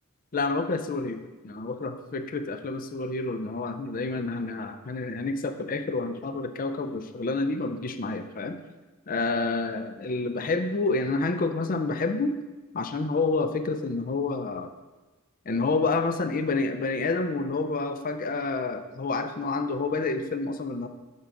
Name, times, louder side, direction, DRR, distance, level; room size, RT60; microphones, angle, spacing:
voice 1, 0.3-8.6 9.1-12.4 12.7-14.7 15.5-20.9, left 3 dB, 40° left, 8 dB, 0.5 m, -28 dB
9.1 x 6.0 x 3.8 m, 1.2 s
head